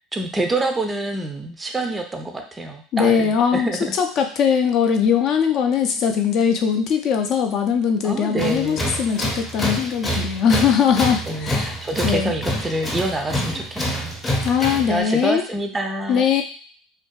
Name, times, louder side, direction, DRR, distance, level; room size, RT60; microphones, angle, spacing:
voice 1, 0.1-3.9 8.0-9.0 11.3-14.1 14.8-16.3, right 2 dB, 15° right, 4 dB, 0.4 m, -26 dB
voice 2, 2.9-3.7 4.0-11.7 12.0-12.3 14.4-15.4 16.1-16.4, left 7 dB, 55° left, 5 dB, 0.4 m, -20 dB
Tools, 8.4-15.0, equal, 20° left, 0.8 m, -26 dB
2.5 x 2.2 x 2.2 m, 0.44 s
supercardioid pair, 105°, 0 cm